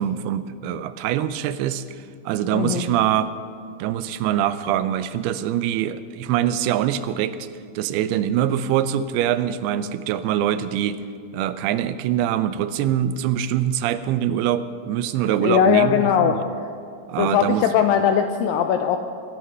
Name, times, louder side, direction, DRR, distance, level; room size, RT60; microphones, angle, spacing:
voice 1, 0.0-3.3 3.8-7.4 7.8-11.0 11.3-16.4 17.1-17.6, right 10 dB, 80° right, 13 dB, 2.5 m, -24 dB
voice 2, 2.5-2.9 15.4-16.4 17.2-19.0, left 8 dB, 90° left, 6 dB, 2.0 m, -19 dB
22.0 x 9.5 x 5.5 m, 2.3 s
omnidirectional pair, 4.7 m